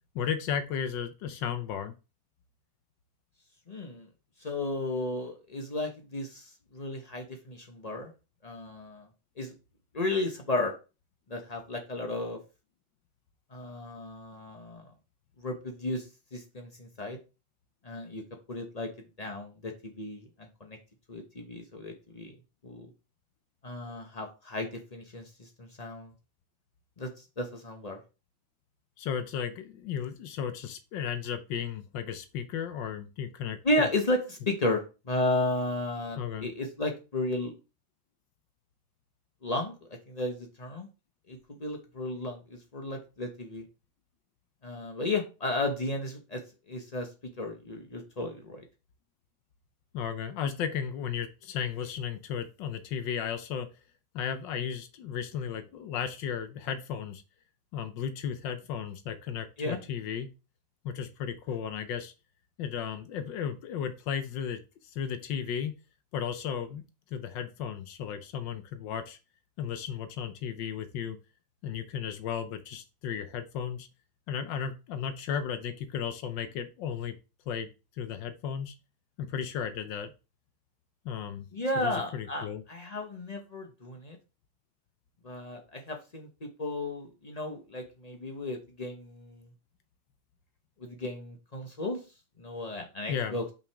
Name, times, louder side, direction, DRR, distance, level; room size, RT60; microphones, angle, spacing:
voice 1, 0.1-1.9 29.0-33.9 36.2-36.5 49.9-53.7 54.1-57.2 57.7-60.3 60.8-62.1 62.6-65.7 66.1-66.8 67.1-69.2 69.6-71.2 71.6-73.9 74.3-77.1 77.5-77.7 78.0-78.7 79.2-80.1 81.0-81.5 81.8-82.6 93.1-93.4, left 8 dB, 70° left, 10 dB, 1.3 m, -34 dB
voice 2, 3.7-4.1 4.4-8.1 8.4-9.1 9.4-9.5 9.9-10.7 11.3-12.4 13.5-14.8 15.4-17.2 17.8-18.2 18.5-20.8 21.1-22.3 22.6-22.9 23.6-26.1 27.0-28.0 33.6-37.5 39.4-39.8 40.1-40.9 41.3-43.6 44.6-46.4 46.7-47.1 47.4-48.6 59.6-59.8 81.5-84.2 85.2-89.5 90.8-92.0 92.4-93.4, left 2 dB, 45° left, 3 dB, 0.5 m, -34 dB
5.8 x 5.0 x 3.4 m, 0.30 s
omnidirectional pair, 2.2 m